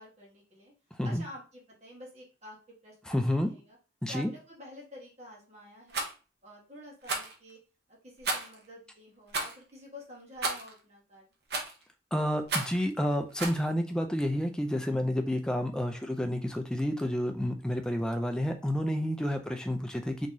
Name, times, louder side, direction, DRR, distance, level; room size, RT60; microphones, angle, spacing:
voice 1, 0.0-0.7 1.0-3.8 4.1-6.1 6.4-7.6 7.9-11.2, equal, 35° right, -4 dB, 1.3 m, -49 dB
voice 2, 0.9-1.2 3.1-3.5 4.0-4.3 12.1-20.3, equal, 5° left, 5 dB, 0.3 m, -30 dB
Rattle, 5.9-6.1 7.0-7.3 8.2-8.6 9.3-9.6 10.4-10.7 11.5-11.8 12.5-12.8 13.4-13.6, right 3 dB, 60° right, 0.7 m, -32 dB
3.7 x 3.0 x 2.6 m, 0.34 s
head